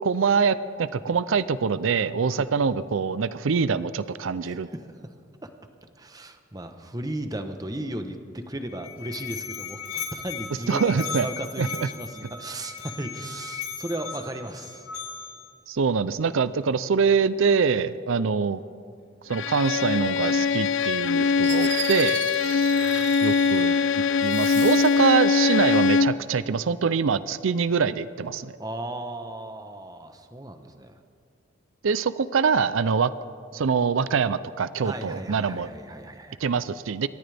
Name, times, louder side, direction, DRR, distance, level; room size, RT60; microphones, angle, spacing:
voice 1, 0.0-4.7 10.7-11.3 11.6-11.7 15.7-18.6 19.3-22.7 23.2-23.7 24.2-28.5 31.8-33.1 33.5-35.7 36.4-37.1, right 5 dB, 80° right, 15 dB, 0.5 m, -24 dB
voice 2, 4.4-5.1 5.4-5.5 6.0-10.9 11.2-14.9 22.5-23.4 28.6-31.0 34.8-36.4, right 1 dB, 20° right, 7 dB, 1.0 m, -36 dB
Musical instrument, 8.5-15.5, left 6 dB, 90° left, 2.7 m, -37 dB
Bowed string instrument, 19.3-26.2, left 5 dB, 70° left, 0.4 m, -22 dB
Fireworks, 21.4-23.9 24.2-25.1, right 10 dB, 60° right, 0.9 m, -35 dB
27.5 x 14.0 x 3.5 m, 2.5 s
head